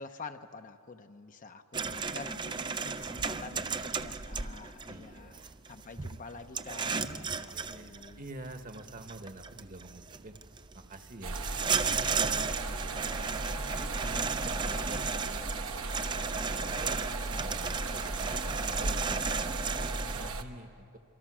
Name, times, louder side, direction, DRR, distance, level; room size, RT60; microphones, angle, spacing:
voice 1, 0.0-5.4 5.7-8.2, left 4 dB, 35° left, 8 dB, 0.7 m, -47 dB
sound 1, 1.7-20.3, right 5 dB, 20° right, 0.5 m, -35 dB
voice 2, 3.5-4.2 4.9-5.5 7.3-10.4 10.7-13.2 13.6-17.0 17.4-19.3 19.7-21.0, right 1 dB, 40° right, 8 dB, 1.3 m, -48 dB
sound 2, 11.2-20.4, right 2 dB, 65° right, 1.1 m, -36 dB
27.0 x 23.5 x 6.2 m, 2.6 s
head